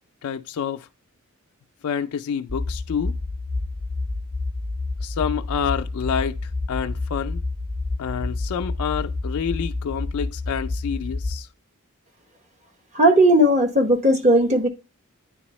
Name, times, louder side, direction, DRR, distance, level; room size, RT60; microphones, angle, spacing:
voice 1, 0.2-0.9 1.8-3.2 5.0-7.4 8.0-11.5, left 7 dB, 70° left, 0.3 m, -28 dB
sound 1, 2.5-11.4, left 2 dB, 70° right, 1.5 m, -29 dB
voice 2, 12.9-14.7, right 1 dB, 35° right, 0.9 m, -16 dB
9.3 x 3.4 x 3.1 m
head